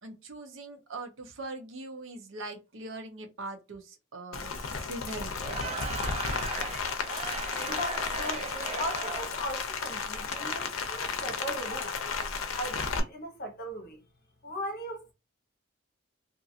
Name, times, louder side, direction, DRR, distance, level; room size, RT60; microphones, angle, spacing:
voice 1, 0.0-5.3, right 2 dB, 70° right, 0.7 m, -41 dB
Rain, 4.3-13.0, left 5 dB, 80° left, 0.5 m, -34 dB
Crowd, 5.3-9.5, right 5 dB, 30° right, 0.3 m, -38 dB
voice 2, 7.7-11.9 12.6-14.0 14.4-15.1, equal, 45° left, 0.9 m, -38 dB
2.6 x 2.4 x 2.7 m
head